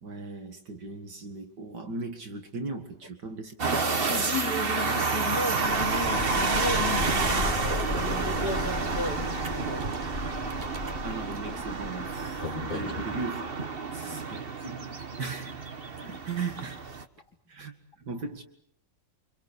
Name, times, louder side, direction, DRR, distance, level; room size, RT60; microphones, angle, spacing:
voice 1, 0.0-3.8 11.0-15.6 16.0-16.8 17.5-18.4, right 3 dB, 65° right, 2.6 m, -38 dB
sound 1, 3.6-17.0, right 4 dB, 35° right, 1.5 m, -30 dB
voice 2, 4.1-9.9 14.0-14.3, left 2 dB, 60° left, 3.5 m, -35 dB
sound 2, 5.6-13.2, left 2 dB, 30° left, 4.3 m, -35 dB
28.5 x 26.0 x 6.8 m
omnidirectional pair, 2.0 m